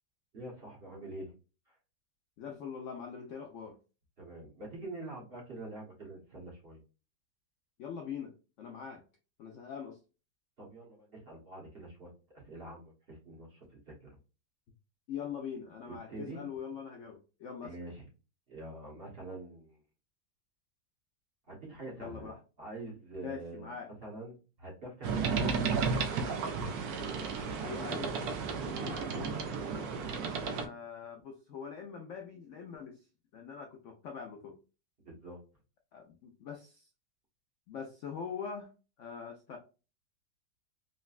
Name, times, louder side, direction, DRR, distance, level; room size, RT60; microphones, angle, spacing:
voice 1, 0.3-1.3 4.2-6.8 10.6-13.9 15.8-16.4 17.6-18.0 18.5-19.8 21.5-23.7 24.0-25.7 27.0-27.6 29.6-30.7 35.0-35.4, right 2 dB, 40° right, -2 dB, 1.1 m, -46 dB
voice 2, 2.4-3.8 7.8-9.0 9.4-10.0 15.1-17.7 22.0-22.4 23.2-23.9 27.6-28.3 28.8-29.4 30.4-33.0 33.3-34.6 35.9-36.9 37.7-38.7 39.0-39.6, left 7 dB, 85° left, 2 dB, 0.6 m, -43 dB
sound 1, 25.0-30.7, right 5 dB, 70° right, 1.0 m, -33 dB
4.0 x 2.1 x 2.3 m, 0.33 s
omnidirectional pair, 1.9 m